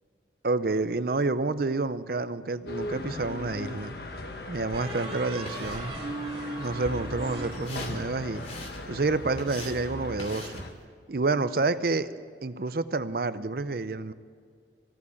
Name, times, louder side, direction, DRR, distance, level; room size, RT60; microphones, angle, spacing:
voice 1, 0.4-3.9 4.5-5.9 6.6-8.4 8.9-10.6 11.1-12.1 12.4-14.1, right 3 dB, 55° right, 13 dB, 0.6 m, -29 dB
sound 1, 2.6-10.7, left 2 dB, 60° left, 1.2 m, -39 dB
sound 2, 2.9-3.8 4.7-8.2, right 1 dB, 30° right, 4.9 m, -38 dB
sound 3, 4.8-10.8, left 1 dB, 35° left, 2.6 m, -46 dB
16.5 x 9.5 x 7.1 m, 2.1 s
head